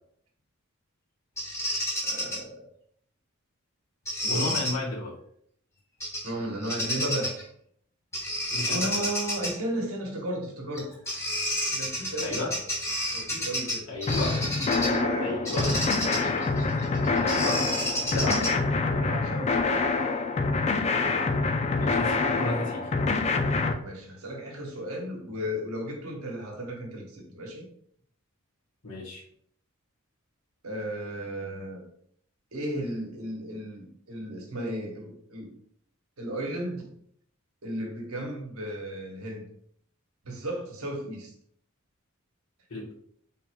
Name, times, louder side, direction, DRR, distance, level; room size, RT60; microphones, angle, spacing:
Bird vocalization bird call bird song, 1.4-2.4 4.0-4.7 6.0-6.3 6.6-7.4 8.1-9.5 10.7-10.8 11.1-15.0 15.4-18.7, left 1 dB, 15° left, 1.2 m, -30 dB
voice 1, 2.0-2.6 4.1-4.7 6.2-7.3 8.7-10.9 11.7-12.6 13.1-13.9 14.7-15.8 18.0-18.6 18.9-20.0 23.8-27.7 30.6-31.8 32.5-35.5 36.2-36.8 37.6-39.4 40.2-41.3, right 1 dB, 80° right, 1 dB, 1.0 m, -34 dB
voice 2, 4.3-5.1 8.5-9.0 12.2-12.5 13.9-14.4 15.2-15.7 17.1-17.6 18.1-18.4 21.7-22.9 28.8-29.2 42.7-42.9, left 2 dB, 90° left, -6 dB, 1.3 m, -33 dB
sound 1, 14.1-23.7, left 3 dB, 30° left, 0.3 m, -26 dB
4.4 x 3.6 x 2.2 m, 0.67 s
head